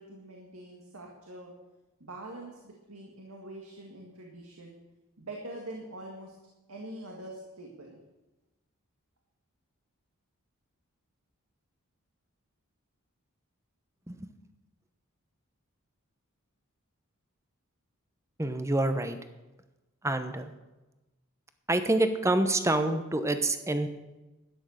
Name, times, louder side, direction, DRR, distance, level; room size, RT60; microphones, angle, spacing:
voice 1, 0.0-1.5 2.0-4.8 5.2-6.3 6.7-8.0, right 1 dB, 75° right, 0 dB, 2.0 m, -44 dB
voice 2, 18.4-19.2 20.0-20.5 21.7-23.9, right 2 dB, 15° right, 9 dB, 0.8 m, -27 dB
12.5 x 9.8 x 6.5 m, 1.1 s
head